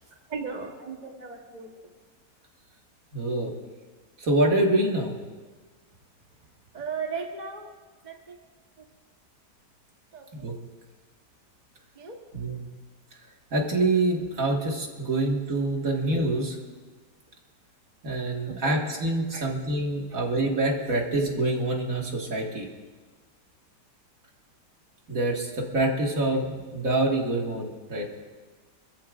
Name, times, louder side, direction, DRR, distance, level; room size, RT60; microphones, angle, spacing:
voice 1, 0.3-1.7 6.7-7.8 8.0-8.4 8.8-8.9 10.1-10.6 11.9-12.2 18.5-18.8 19.3-19.5 20.1-20.3, right 5 dB, 30° right, 1 dB, 1.1 m, -37 dB
voice 2, 3.1-3.5 4.2-5.2 10.3-10.6 12.3-12.7 13.5-16.6 18.0-22.7 25.1-28.2, right 2 dB, 50° right, 0 dB, 2.2 m, -26 dB
25.0 x 14.0 x 2.5 m, 1.4 s
omnidirectional pair, 1.8 m